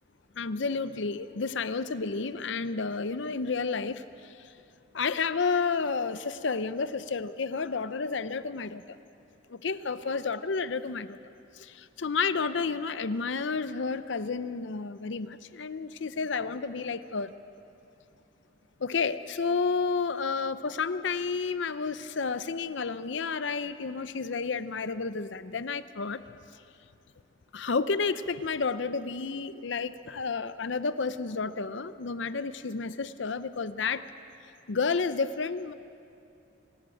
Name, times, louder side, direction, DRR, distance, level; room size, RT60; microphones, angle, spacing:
voice 1, 0.4-4.5 4.9-9.0 9.5-11.2 11.5-17.3 18.8-26.2 27.5-34.0 34.7-35.7, left 4 dB, 70° left, 13 dB, 0.6 m, -31 dB
26.0 x 12.5 x 8.5 m, 2.7 s
head